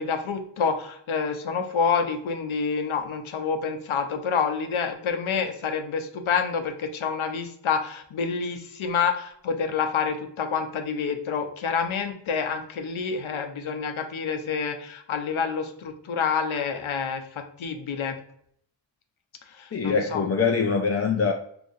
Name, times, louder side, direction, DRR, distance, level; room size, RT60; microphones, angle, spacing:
voice 1, 0.0-17.2 17.6-18.2 19.5-20.2, left 6 dB, 75° left, 0.7 m, -28 dB
voice 2, 19.7-21.3, left 5 dB, 35° left, 0.4 m, -23 dB
3.8 x 3.0 x 2.5 m
cardioid pair, 45°, 48 cm